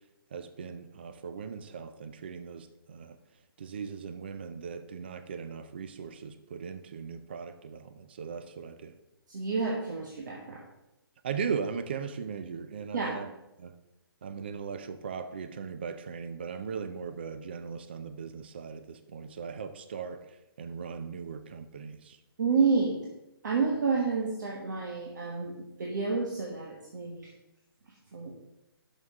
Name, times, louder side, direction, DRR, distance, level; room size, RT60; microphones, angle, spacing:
voice 1, 0.3-3.2 3.6-9.0 11.2-13.3 13.6-13.7 14.2-22.2, right 6 dB, 25° right, 10 dB, 0.3 m, -38 dB
voice 2, 9.3-10.6 12.9-13.2 22.4-23.0 23.4-27.3 28.1-28.3, right 4 dB, 45° right, -1 dB, 1.3 m, -29 dB
6.3 x 5.7 x 6.3 m, 0.93 s
hypercardioid pair, 175°, 13 cm